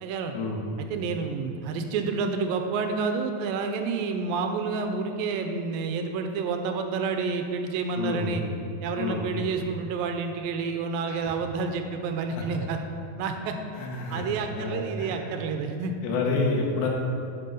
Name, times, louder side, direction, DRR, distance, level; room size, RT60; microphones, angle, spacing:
voice 1, 0.0-0.3 0.8-8.4 8.8-12.8 13.2-13.6 14.1-15.9, right 4 dB, 80° right, 6 dB, 2.3 m, -29 dB
voice 2, 8.0-8.3 9.0-9.2 11.1-11.2 12.3-12.7 13.7-14.2 14.5-15.3 16.0-16.9, left 3 dB, 90° left, -1 dB, 3.2 m, -29 dB
10.0 x 6.7 x 5.2 m, 2.4 s
omnidirectional pair, 4.2 m